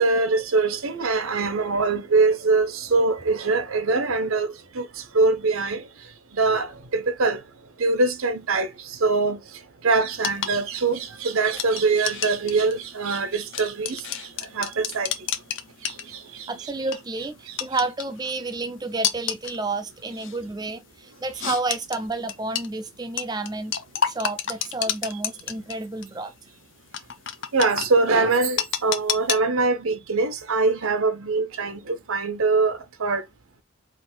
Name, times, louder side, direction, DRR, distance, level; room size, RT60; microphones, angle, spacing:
voice 1, 0.0-4.5 4.7-4.9 5.1-5.8 6.3-7.4 7.8-9.4 9.8-14.0 14.5-15.1 15.9-16.5 27.5-33.2, right 3 dB, 80° right, 0.7 m, -23 dB
sound 1, 10.2-16.4 16.8-17.0 17.6-18.3 19.0-19.6 20.2-20.4 21.4-22.7 23.2-25.7 26.0-26.1 26.9-27.9 28.6-29.4, left 8 dB, 60° left, 0.6 m, -29 dB
voice 2, 16.5-23.7 24.0-26.3, right 3 dB, 20° right, 0.4 m, -30 dB
4.9 x 2.5 x 3.7 m
head